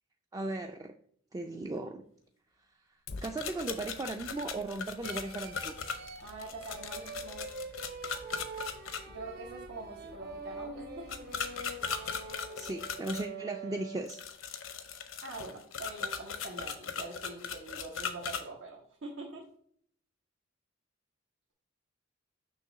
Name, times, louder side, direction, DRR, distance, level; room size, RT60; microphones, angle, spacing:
voice 1, 0.3-0.9 1.3-2.0 3.2-5.7 12.6-14.2, right 2 dB, 20° right, 5 dB, 0.3 m, -37 dB
Fire, 3.1-12.3, left 3 dB, 55° left, 0.5 m, -53 dB
sound 1, 3.2-9.0 11.1-13.3 14.1-18.4, left 6 dB, 85° left, 0.7 m, -38 dB
sound 2, 5.0-14.4, right 3 dB, 50° right, 0.7 m, -45 dB
voice 2, 6.2-7.5 9.1-11.1 15.2-19.4, right 3 dB, 85° right, -3 dB, 1.3 m, -44 dB
6.4 x 3.0 x 5.7 m, 0.63 s
head